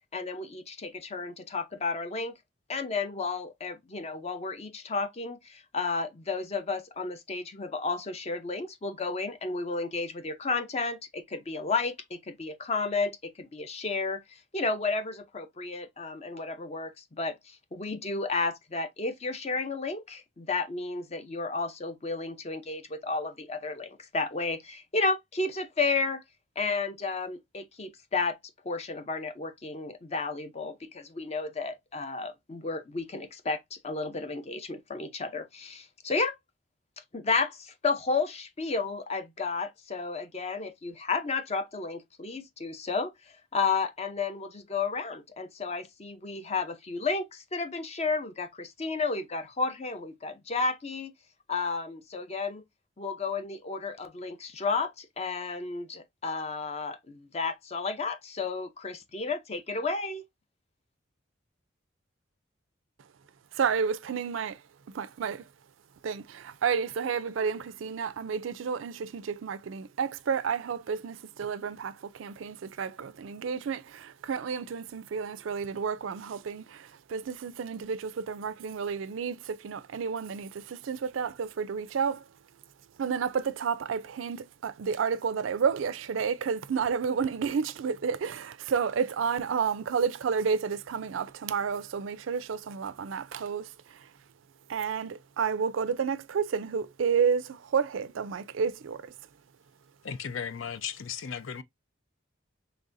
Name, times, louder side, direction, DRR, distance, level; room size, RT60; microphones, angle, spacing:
voice 1, 0.1-2.3 2.7-14.2 14.5-26.2 26.6-28.4 28.6-36.3 37.1-43.1 43.5-51.1 51.5-52.6 53.0-60.2, left 4 dB, 35° left, 0.6 m, -32 dB
voice 2, 63.5-64.6 64.9-65.5 66.0-82.2 83.0-94.1 94.7-99.1, right 6 dB, 80° right, 0.4 m, -31 dB
voice 3, 100.0-101.6, left 7 dB, 85° left, 0.5 m, -36 dB
4.0 x 3.3 x 2.5 m
head